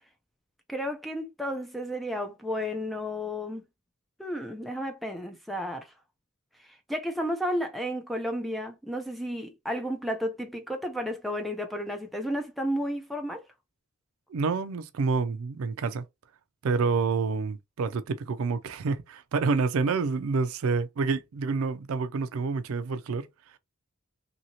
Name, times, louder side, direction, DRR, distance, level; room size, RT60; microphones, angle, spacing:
voice 1, 0.7-3.6 4.2-5.9 6.9-13.4, equal, ahead, 0.5 m, -32 dB
voice 2, 14.3-16.0 16.6-23.6, right 4 dB, 70° right, 0.4 m, -28 dB
2.8 x 2.8 x 2.8 m
head